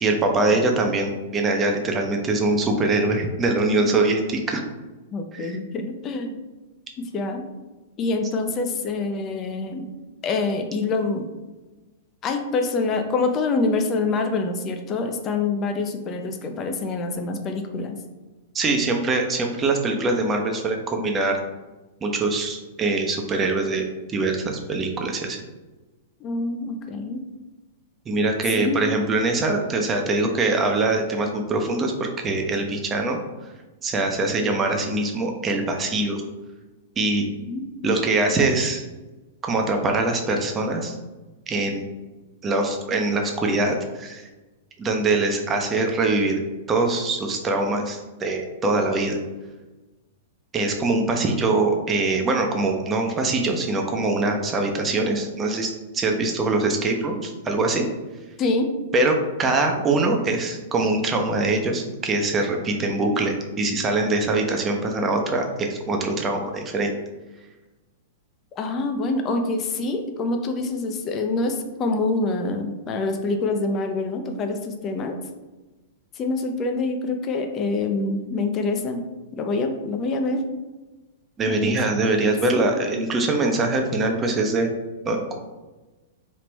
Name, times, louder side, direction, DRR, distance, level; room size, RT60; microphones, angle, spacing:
voice 1, 0.0-4.6 5.3-5.6 18.5-21.4 22.0-25.4 28.1-33.2 33.8-36.2 37.0-37.2 37.8-38.8 39.4-40.9 41.5-41.8 42.4-44.2 44.8-46.4 46.7-49.2 50.5-57.8 58.9-66.9 81.4-84.7 85.0-85.3, right 2 dB, 20° right, 3 dB, 0.5 m, -23 dB
voice 2, 5.1-6.4 7.0-7.5 8.0-9.9 10.2-11.3 12.2-18.0 26.2-27.2 28.6-28.9 37.5-38.0 58.4-58.7 68.5-75.2 76.1-79.0 79.3-80.4 81.5-81.8 82.5-82.7, left 3 dB, 25° left, 5 dB, 0.4 m, -26 dB
3.1 x 2.9 x 3.3 m, 1.2 s
figure-of-eight pair, 100°, 0 cm